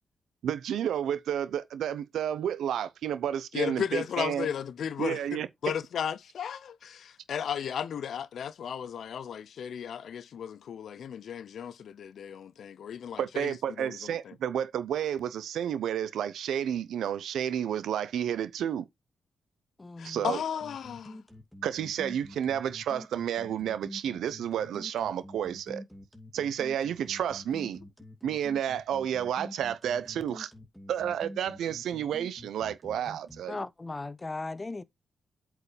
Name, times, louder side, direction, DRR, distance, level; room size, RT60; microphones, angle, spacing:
voice 1, 0.4-4.5 5.0-5.7 13.2-18.9 20.0-20.4 21.6-25.8 26.3-27.8 28.2-30.5 30.9-33.7, right 9 dB, 80° right, 0.8 m, -31 dB
voice 2, 3.5-14.3 20.0-21.2, left 8 dB, 70° left, 0.6 m, -35 dB
voice 3, 19.8-20.3 33.5-34.8, left 3 dB, 30° left, 0.9 m, -37 dB
sound 1, 20.6-33.4, left 1 dB, ahead, 2.5 m, -47 dB
8.2 x 4.8 x 3.3 m
supercardioid pair, 55°, 0 cm